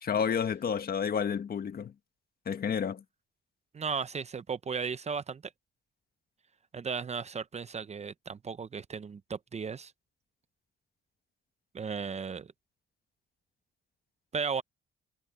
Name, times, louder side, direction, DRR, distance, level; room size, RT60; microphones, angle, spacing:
voice 1, 0.0-1.9 2.4-3.0, left 7 dB, 50° left, 1.7 m, -30 dB
voice 2, 3.7-5.4 6.7-9.9 11.7-12.5 14.3-14.6, right 5 dB, 35° right, 0.8 m, -35 dB
cardioid pair, 90°, 20 cm